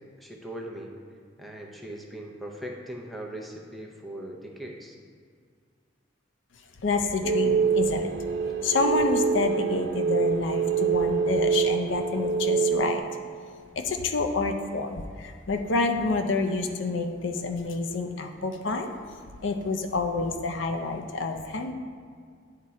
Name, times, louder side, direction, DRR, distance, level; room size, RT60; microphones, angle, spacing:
voice 1, 0.2-0.9 1.4-5.0, right 1 dB, ahead, 0 dB, 0.6 m, -39 dB
voice 2, 6.8-8.1 8.6-13.0 13.8-18.9 19.4-21.7, left 3 dB, 85° left, 5 dB, 0.5 m, -28 dB
sound 1, 7.2-13.0, right 6 dB, 70° right, 0.4 m, -25 dB
9.5 x 3.7 x 4.2 m, 2.1 s
head